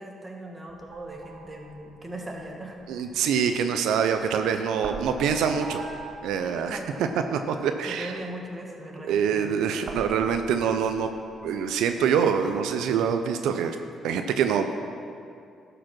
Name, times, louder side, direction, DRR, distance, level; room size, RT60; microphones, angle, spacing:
voice 1, 0.0-2.8 3.1-3.3 6.5-7.0 7.9-9.6, right 1 dB, 20° right, 0 dB, 1.6 m, -39 dB
sound 1, 0.7-4.3 4.8-7.3 8.2-8.3 9.8-11.7, right 5 dB, 65° right, 0.7 m, -42 dB
voice 2, 2.9-5.8 6.2-8.1 9.1-11.1 11.4-13.8 14.0-14.7, right 7 dB, 90° right, 7 dB, 0.5 m, -25 dB
12.0 x 5.0 x 6.0 m, 2.4 s
cardioid pair, 90°, 0 cm